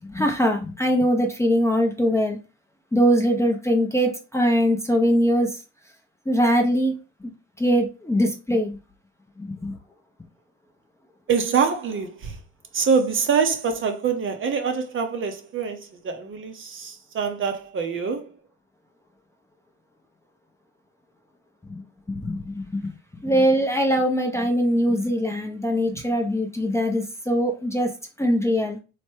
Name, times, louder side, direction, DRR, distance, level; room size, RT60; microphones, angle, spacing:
voice 1, 0.1-2.4 2.9-5.6 6.3-6.9 7.2-7.3 7.6-8.8 9.4-9.8 21.7-21.8 22.2-27.9 28.2-28.8, equal, 10° left, 0.5 m, -22 dB
voice 2, 11.3-12.4 12.7-18.3, right 6 dB, 35° right, 0.6 m, -25 dB
3.1 x 2.1 x 3.1 m
hypercardioid pair, 75°, 36 cm